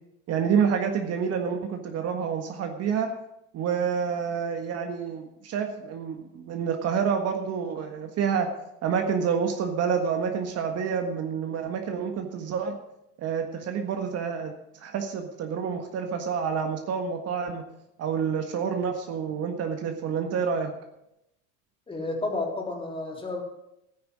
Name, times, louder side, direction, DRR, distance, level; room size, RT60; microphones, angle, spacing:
voice 1, 0.3-3.1 3.5-8.5 8.8-12.7 13.2-17.6 18.0-20.7, right 6 dB, 45° right, 5 dB, 1.6 m, -28 dB
voice 2, 21.9-23.4, left 2 dB, 15° left, 0 dB, 3.4 m, -31 dB
13.0 x 9.6 x 6.3 m, 0.84 s
supercardioid pair, 130°, 36 cm